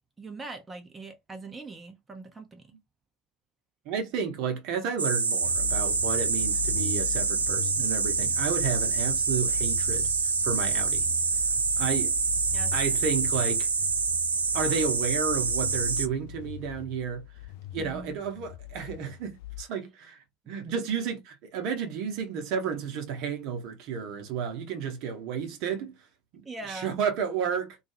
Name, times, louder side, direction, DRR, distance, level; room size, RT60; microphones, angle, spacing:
voice 1, 0.2-2.6 12.5-12.7 17.8-18.2 26.4-26.9, right 3 dB, 20° right, 0.5 m, -41 dB
voice 2, 3.9-10.1 10.4-11.1 11.8-12.1 12.7-13.7 14.5-17.2 17.7-20.2 20.5-25.9 26.3-27.8, right 6 dB, 55° right, 0.7 m, -32 dB
sound 1, 5.0-16.1, right 5 dB, 80° right, 0.3 m, -26 dB
sound 2, 5.4-19.6, left 16 dB, 60° left, 0.3 m, -40 dB
2.3 x 2.3 x 2.9 m
figure-of-eight pair, 70°, 0 cm